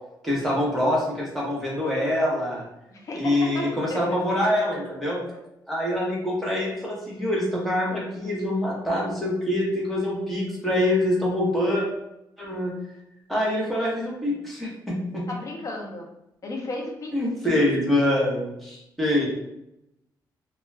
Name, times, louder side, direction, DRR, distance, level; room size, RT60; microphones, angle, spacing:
voice 1, 0.2-2.6 3.1-5.2 5.7-11.9 12.4-12.7 13.3-15.2 17.1-19.3, left 1 dB, ahead, -6 dB, 0.8 m, -25 dB
voice 2, 2.9-4.0 15.3-16.1 16.4-17.1 19.2-19.3, left 2 dB, 45° left, 0 dB, 0.6 m, -34 dB
2.3 x 2.2 x 3.1 m, 0.84 s
cardioid pair, 135°, 8 cm